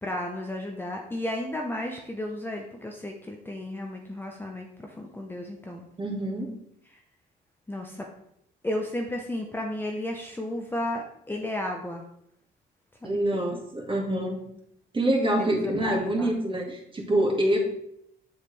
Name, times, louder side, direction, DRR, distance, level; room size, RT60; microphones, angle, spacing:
voice 1, 0.0-5.9 7.7-8.1 8.6-12.0 13.0-13.6 15.4-16.3, left 1 dB, 10° left, 1 dB, 0.9 m, -33 dB
voice 2, 6.0-6.5 13.0-14.4 14.9-17.6, right 1 dB, 25° right, 0 dB, 2.1 m, -26 dB
7.3 x 6.6 x 3.3 m, 0.74 s
cardioid pair, 90°, 20 cm